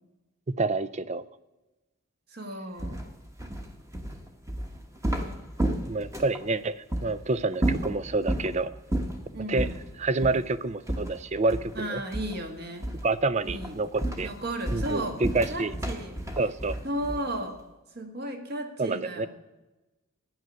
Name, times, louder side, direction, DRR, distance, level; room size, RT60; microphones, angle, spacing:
voice 1, 0.5-1.3 5.9-8.7 9.5-9.7 10.0-12.0 13.0-14.3 14.7-15.7 16.4-16.8 18.8-19.3, right 3 dB, 30° right, 16 dB, 0.4 m, -28 dB
voice 2, 2.3-3.0 9.3-9.7 11.7-12.9 13.4-13.8 14.2-15.2 15.5-16.2 16.8-17.6 17.9-19.3, right 1 dB, 45° right, 5 dB, 1.6 m, -34 dB
sound 1, 2.8-6.4 6.9-7.1 7.5-8.5 8.9-9.2 9.6-9.8 10.2-10.4 10.9-11.8 12.1-12.5 12.8-13.1 13.5-17.4, right 1 dB, 15° right, 1.1 m, -31 dB
12.0 x 9.2 x 6.3 m, 1.1 s
head